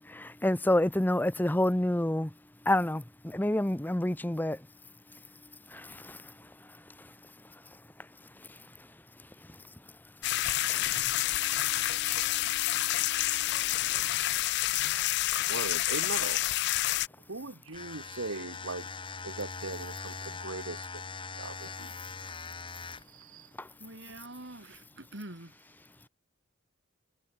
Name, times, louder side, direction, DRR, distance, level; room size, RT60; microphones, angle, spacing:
voice 1, 0.0-2.3 2.7-4.6 5.7-6.2 10.8-10.9 23.6-23.7, left 1 dB, 10° left, 0.7 m, -28 dB
sound 1, 10.2-17.1, left 15 dB, 60° left, 0.4 m, -28 dB
voice 2, 14.3-14.7 15.5-16.4 17.3-18.9 19.2-21.0 21.4-22.0 22.6-22.7 23.0-23.6, right 3 dB, 85° right, 1.7 m, -40 dB
sound 2, 17.7-23.2, left 4 dB, 25° left, 1.4 m, -41 dB
voice 3, 23.8-25.8, right 1 dB, 60° right, 4.5 m, -46 dB
head